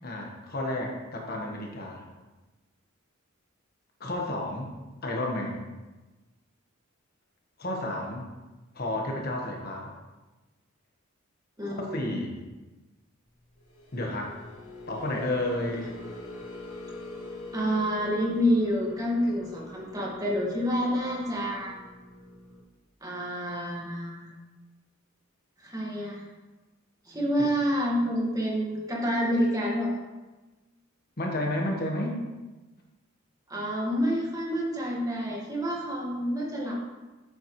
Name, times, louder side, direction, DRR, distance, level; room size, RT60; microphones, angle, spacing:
voice 1, 0.0-2.1 4.0-4.7 5.0-5.7 7.6-8.3 8.7-9.9 11.6-12.3 13.9-14.3 14.9-15.9 31.2-32.2, left 1 dB, 45° left, 0 dB, 1.3 m, -31 dB
voice 2, 11.6-12.2 17.5-21.7 23.0-24.3 25.6-26.2 27.1-29.9 33.5-36.9, equal, 15° right, -3 dB, 1.8 m, -28 dB
sound 1, 13.6-22.6, left 2 dB, 85° left, 2.4 m, -44 dB
9.5 x 8.3 x 3.2 m, 1.2 s
head